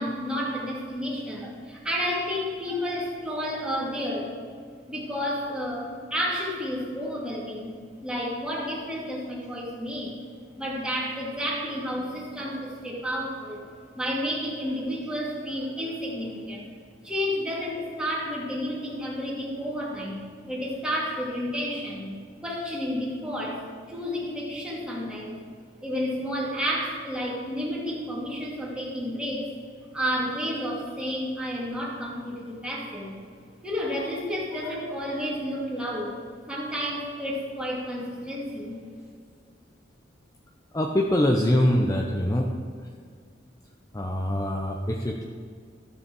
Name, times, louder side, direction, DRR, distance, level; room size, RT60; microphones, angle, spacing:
voice 1, 0.0-4.3 4.9-7.7 8.0-10.1 10.6-13.6 13.9-16.6 17.0-20.2 20.5-22.1 22.4-25.4 25.8-29.5 29.9-33.1 33.6-36.2 36.5-38.8, equal, 5° right, -5 dB, 2.4 m, -31 dB
voice 2, 40.7-42.5 43.9-45.2, left 1 dB, 20° left, 1 dB, 0.6 m, -24 dB
13.0 x 7.0 x 4.7 m, 2.1 s
head